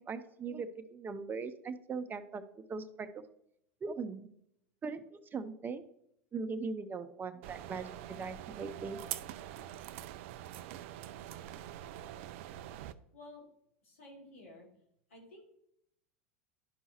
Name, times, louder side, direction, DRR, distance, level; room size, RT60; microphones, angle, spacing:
voice 1, 0.1-2.4 2.7-3.2 3.8-4.3 4.8-5.8 6.3-9.0, right 4 dB, 25° right, 11 dB, 0.8 m, -40 dB
sound 1, 7.4-12.9, right 12 dB, 65° right, 0.5 m, -44 dB
voice 2, 13.1-13.5 13.8-14.7 15.1-15.5, left 1 dB, 80° left, -1 dB, 2.9 m, -53 dB
12.0 x 5.4 x 3.0 m, 0.75 s
hypercardioid pair, 85°, 7 cm